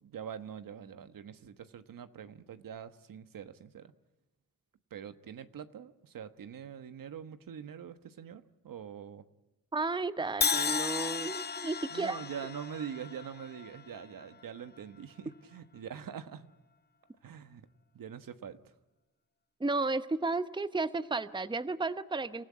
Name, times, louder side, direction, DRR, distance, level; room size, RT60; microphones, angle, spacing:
voice 1, 0.0-3.9 4.9-9.2 11.9-16.5 17.2-17.7 17.9-18.6, right 8 dB, 70° right, 11 dB, 1.3 m, -44 dB
voice 2, 9.7-12.2 19.6-22.4, right 3 dB, 15° right, 13 dB, 0.9 m, -33 dB
Crash cymbal, 10.4-14.4, left 5 dB, 30° left, 0.7 m, -34 dB
28.5 x 15.0 x 9.6 m, 1.1 s
cardioid pair, 85°, 35 cm